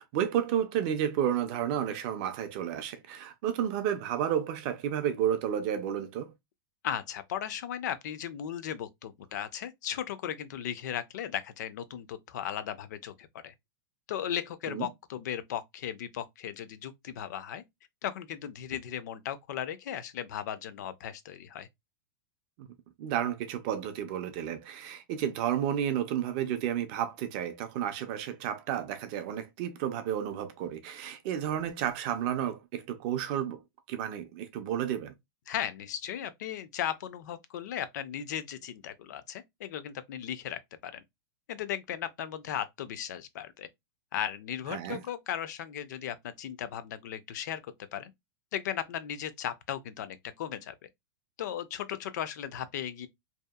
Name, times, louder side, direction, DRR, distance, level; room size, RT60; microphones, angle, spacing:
voice 1, 0.0-6.3 14.7-14.9 22.6-22.7 23.0-33.6 33.9-35.1 44.7-45.0, right 10 dB, 25° right, 0.3 m, -31 dB
voice 2, 6.8-13.5 14.1-17.6 18.0-21.7 35.5-41.0 41.5-43.7 44.1-47.6 47.9-48.1 48.5-50.8 51.4-53.1, left 10 dB, 55° left, 0.4 m, -36 dB
2.7 x 2.2 x 2.2 m
supercardioid pair, 175°, 12 cm